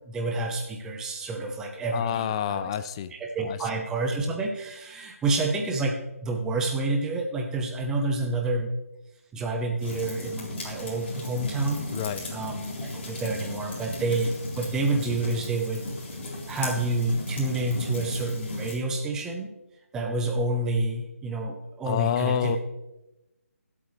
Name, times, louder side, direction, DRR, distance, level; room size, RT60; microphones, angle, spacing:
voice 1, 0.1-2.7 3.2-8.7 9.3-11.8 12.3-15.9 16.5-19.5 19.9-22.6, right 2 dB, 5° right, 3 dB, 1.0 m, -28 dB
voice 2, 1.9-3.1 3.4-3.6 11.9-12.3 21.8-22.6, left 9 dB, 20° left, 13 dB, 0.5 m, -28 dB
sound 1, 9.8-18.8, left 2 dB, 45° left, 3.9 m, -36 dB
19.5 x 8.4 x 3.3 m, 0.97 s
figure-of-eight pair, 160°, 8 cm